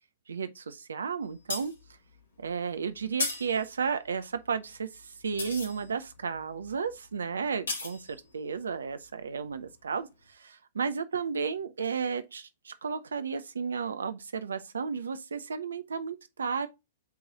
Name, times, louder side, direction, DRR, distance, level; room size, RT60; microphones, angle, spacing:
voice 1, 0.3-1.7 2.4-8.0 8.3-16.7, right 5 dB, 75° right, 0.5 m, -33 dB
sound 1, 1.3-9.8 10.2-10.3, left 3 dB, 80° left, 2.9 m, -38 dB
8.2 x 3.1 x 3.8 m
figure-of-eight pair, 110°, 0 cm